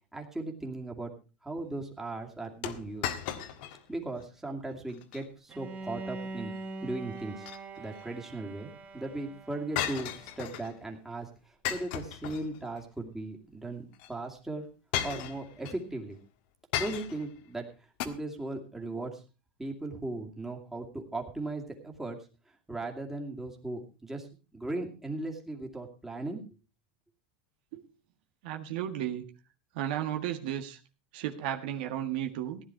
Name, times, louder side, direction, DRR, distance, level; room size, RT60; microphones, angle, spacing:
voice 1, 0.1-1.1 1.4-3.1 3.9-6.5 6.8-7.5 7.8-11.3 11.7-14.6 15.0-16.2 16.8-17.7 18.0-19.2 19.6-22.2 22.7-24.3 24.5-26.4, right 2 dB, 5° right, 1 dB, 2.5 m, -37 dB
sound 1, 2.6-3.8 4.2-4.3 4.9-5.2 7.2-8.0 9.8-10.7 11.6-12.8 13.9-14.1 14.9-15.8 16.7-17.3 18.0-18.1, left 10 dB, 65° left, 1.6 m, -35 dB
Bowed string instrument, 5.5-10.5, right 3 dB, 30° right, 1.7 m, -43 dB
voice 2, 28.4-29.2 29.7-30.8 31.1-32.6, right 11 dB, 70° right, 5 dB, 1.7 m, -34 dB
15.5 x 10.5 x 4.6 m, 0.32 s
supercardioid pair, 135°, 5 cm